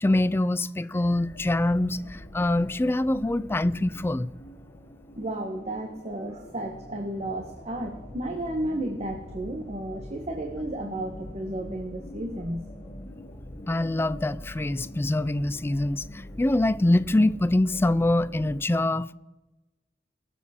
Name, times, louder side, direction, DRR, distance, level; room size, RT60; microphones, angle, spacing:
voice 1, 0.0-4.3 13.7-19.1, left 1 dB, 15° left, 0.3 m, -24 dB
sound 1, 1.1-18.6, left 1 dB, 35° left, 1.3 m, -44 dB
voice 2, 5.2-12.7, right 1 dB, 40° right, 1.1 m, -33 dB
20.5 x 7.3 x 4.2 m
head